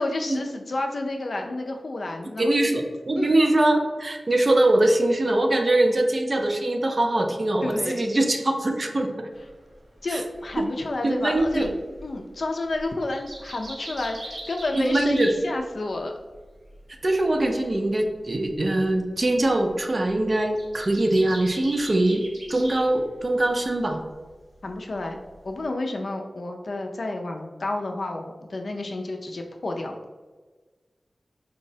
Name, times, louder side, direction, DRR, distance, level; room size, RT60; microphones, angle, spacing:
voice 1, 0.0-2.6 3.2-3.3 7.6-8.0 10.0-11.7 12.0-16.1 24.6-25.2 25.4-30.0, left 2 dB, 55° left, 3 dB, 0.4 m, -30 dB
voice 2, 2.4-9.3 10.1-10.2 10.6-10.7 11.0-11.7 14.7-15.3 17.0-24.0, right 1 dB, 40° right, 4 dB, 0.4 m, -22 dB
sound 1, 9.3-16.0 16.3-22.9 23.1-23.8 24.2-25.6, right 1 dB, 85° right, 1.1 m, -42 dB
4.5 x 2.0 x 2.7 m, 1.3 s
wide cardioid pair, 105°, 0 cm